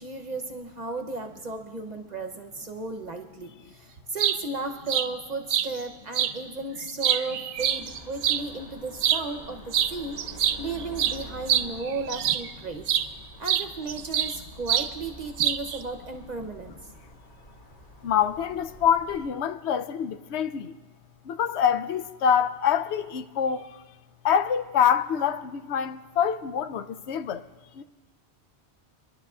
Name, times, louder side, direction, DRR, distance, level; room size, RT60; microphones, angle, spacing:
voice 1, 0.0-12.9 13.4-16.8, right 3 dB, 45° right, 0.8 m, -35 dB
sound 1, 4.0-4.4 4.9-5.1 5.5-5.7 6.1-6.3 6.8-8.4 9.0-9.2 9.7-9.9 10.2-12.5 12.9-13.1 13.5-14.4 14.7-14.9 15.4-15.8, right 10 dB, 85° right, 0.9 m, -25 dB
sound 2, 7.6-19.3, right 1 dB, 35° left, 1.5 m, -47 dB
voice 2, 18.0-20.7 21.3-23.8 24.2-27.4 27.7-27.8, left 8 dB, 80° left, 0.9 m, -25 dB
27.0 x 11.0 x 2.4 m
omnidirectional pair, 1.1 m